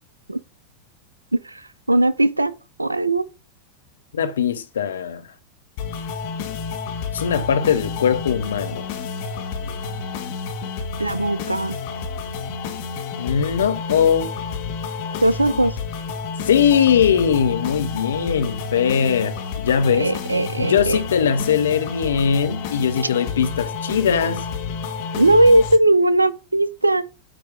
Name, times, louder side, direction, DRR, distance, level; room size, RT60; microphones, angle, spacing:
voice 1, 1.4-2.5 2.8-3.3 11.0-11.8 15.2-15.8 20.0-21.0 25.1-27.1, right 1 dB, 80° right, 0.3 m, -18 dB
voice 2, 4.1-5.2 7.1-8.9 13.2-14.3 16.5-20.1 20.6-24.4, left 7 dB, 65° left, 0.7 m, -20 dB
sound 1, 5.8-25.8, left 5 dB, 45° left, 1.3 m, -30 dB
8.9 x 3.1 x 4.8 m
figure-of-eight pair, 90°, 0 cm